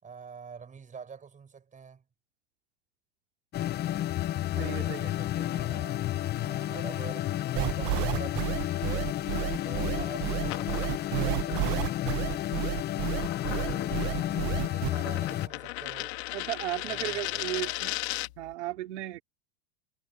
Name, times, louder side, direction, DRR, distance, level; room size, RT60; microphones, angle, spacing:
voice 1, 0.0-2.0 4.5-7.3 7.6-9.2 9.6-11.8 13.5-16.2 16.8-17.7, right 6 dB, 20° right, 6.5 m, -46 dB
sound 1, 3.5-15.5, left 13 dB, 30° left, 0.6 m, -31 dB
voice 2, 4.6-5.1 16.3-17.9 18.4-19.2, right 15 dB, 80° right, 4.0 m, -35 dB
sound 2, 7.6-14.9, right 25 dB, 55° right, 0.8 m, -31 dB
sound 3, 10.4-18.5, left 22 dB, 70° left, 2.4 m, -38 dB
hypercardioid pair, 110°, 34 cm